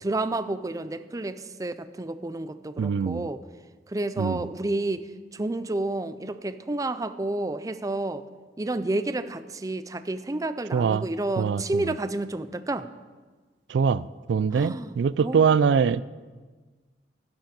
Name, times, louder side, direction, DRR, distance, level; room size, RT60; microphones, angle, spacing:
voice 1, 0.0-3.4 3.9-8.2 8.6-12.9 14.5-14.9 15.2-15.4, right 2 dB, 20° right, 12 dB, 0.5 m, -30 dB
voice 2, 2.8-3.3 4.2-4.5 10.7-11.1 11.4-11.9 13.7-16.0, right 6 dB, 85° right, 19 dB, 0.3 m, -23 dB
11.5 x 10.5 x 6.0 m, 1.4 s
head